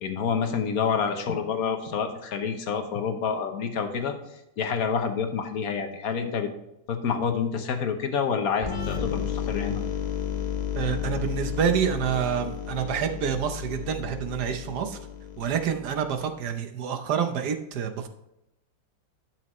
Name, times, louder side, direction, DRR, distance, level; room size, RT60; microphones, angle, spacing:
voice 1, 0.0-4.1 4.6-6.5 6.9-9.8, left 6 dB, 55° left, 6 dB, 1.3 m, -28 dB
sound 1, 8.6-16.2, left 8 dB, 75° left, 0.4 m, -32 dB
voice 2, 10.7-15.0 15.4-18.1, right 8 dB, 65° right, 7 dB, 1.3 m, -28 dB
12.0 x 6.1 x 3.1 m, 0.86 s
omnidirectional pair, 2.0 m